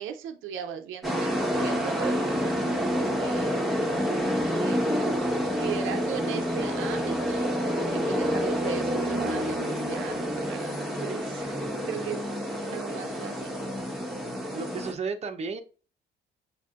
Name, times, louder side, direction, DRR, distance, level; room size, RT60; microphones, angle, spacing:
voice 1, 0.0-2.6 3.2-4.3 4.6-12.2 12.7-13.6, right 9 dB, 80° right, 6 dB, 0.6 m, -38 dB
sound 1, 1.0-14.9, equal, ahead, 1.0 m, -28 dB
voice 2, 11.6-12.2 12.5-12.6 14.5-15.6, right 5 dB, 35° right, 5 dB, 0.6 m, -35 dB
6.4 x 2.5 x 2.4 m, 0.35 s
cardioid pair, 90°, 20 cm